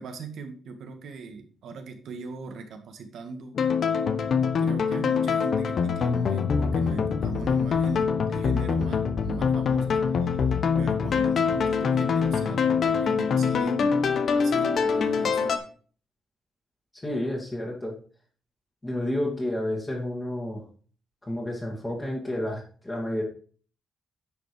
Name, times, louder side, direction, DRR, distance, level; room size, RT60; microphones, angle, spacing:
voice 1, 0.0-3.6 4.6-10.5 10.8-14.0 14.3-15.7, right 4 dB, 75° right, 6 dB, 1.9 m, -40 dB
sound 1, 3.5-15.6, left 6 dB, 55° left, 1.1 m, -24 dB
voice 2, 16.9-17.9 18.8-20.6 21.2-23.2, left 1 dB, 15° left, -3 dB, 2.4 m, -30 dB
10.0 x 5.3 x 5.2 m, 0.43 s
cardioid pair, 140°, 0 cm